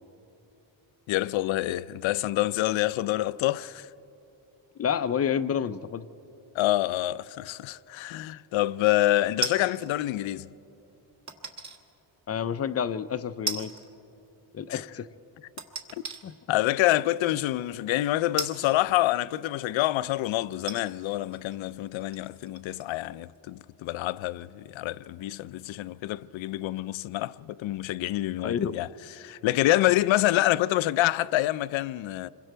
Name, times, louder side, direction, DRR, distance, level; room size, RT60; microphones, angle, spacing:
voice 1, 1.1-3.9 6.5-10.5 14.7-14.9 16.5-28.9 29.2-32.3, left 15 dB, 90° left, 0.6 m, -27 dB
voice 2, 4.8-6.1 12.3-13.7 14.5-15.1 16.2-16.3 28.4-28.7, left 8 dB, 35° left, 0.4 m, -29 dB
sound 1, 9.4-9.9 11.3-11.8 12.4-12.5 13.5-13.9 14.2-14.3 15.6-16.2 17.1-17.2 18.4-19.5 20.1-20.2 20.6-23.1 23.3-23.4, right 3 dB, 35° right, 1.5 m, -36 dB
26.5 x 22.5 x 4.5 m
cardioid pair, 155°, 45 cm